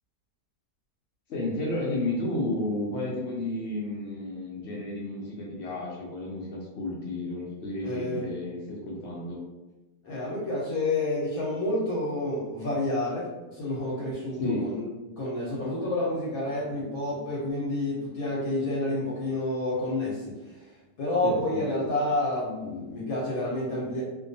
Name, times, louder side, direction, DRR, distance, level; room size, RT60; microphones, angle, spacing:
voice 1, 1.3-9.4 14.4-14.7 21.2-21.7, left 2 dB, 90° left, -3 dB, 0.5 m, -32 dB
voice 2, 7.8-8.3 10.0-14.9 15.2-20.4 21.0-24.0, left 1 dB, 65° left, -6 dB, 1.1 m, -29 dB
2.6 x 2.2 x 2.6 m, 1.1 s
omnidirectional pair, 1.8 m